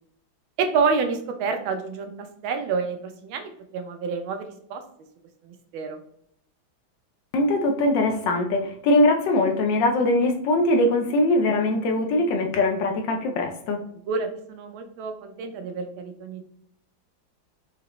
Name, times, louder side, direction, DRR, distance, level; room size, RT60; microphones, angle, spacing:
voice 1, 0.6-2.1 2.4-4.8 5.4-6.0 14.1-16.5, right 5 dB, 80° right, 6 dB, 1.5 m, -28 dB
voice 2, 7.3-13.8, left 1 dB, 75° left, 4 dB, 1.2 m, -22 dB
4.9 x 2.9 x 3.1 m, 0.67 s
omnidirectional pair, 2.2 m